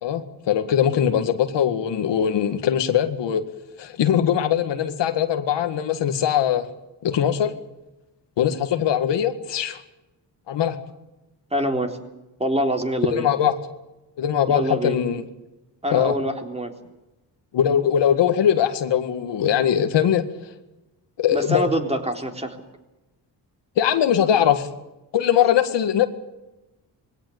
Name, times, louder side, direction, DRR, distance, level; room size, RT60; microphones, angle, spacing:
voice 1, 0.0-3.4 3.8-6.6 7.0-7.5 8.4-9.8 10.5-10.8 13.1-13.5 14.2-15.2 15.9-16.1 17.5-20.3 21.2-21.7 23.8-24.7 25.1-26.1, left 9 dB, 75° left, 8 dB, 1.9 m, -21 dB
voice 2, 11.5-12.0 12.4-13.3 14.5-15.0 15.8-16.7 21.3-22.6, equal, 15° right, 4 dB, 3.7 m, -25 dB
21.5 x 17.0 x 9.5 m, 0.99 s
cardioid pair, 85°, 43 cm